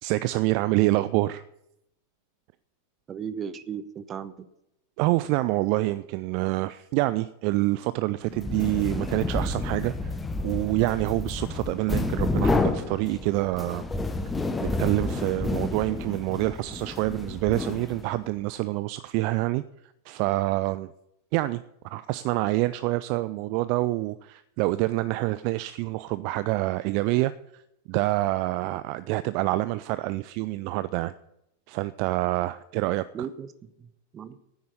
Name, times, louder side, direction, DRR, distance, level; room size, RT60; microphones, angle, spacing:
voice 1, 0.0-1.4 5.0-9.9 10.4-13.8 14.6-19.6 20.1-20.9 21.3-21.6 21.9-27.3 27.9-31.1 31.7-33.0, right 19 dB, 45° right, 0.4 m, -26 dB
voice 2, 3.1-4.5 33.1-33.5 33.8-34.4, right 7 dB, 25° right, 0.9 m, -36 dB
sound 1, 8.3-18.3, left 2 dB, 10° left, 0.9 m, -30 dB
9.7 x 9.5 x 8.3 m
figure-of-eight pair, 90°, 0 cm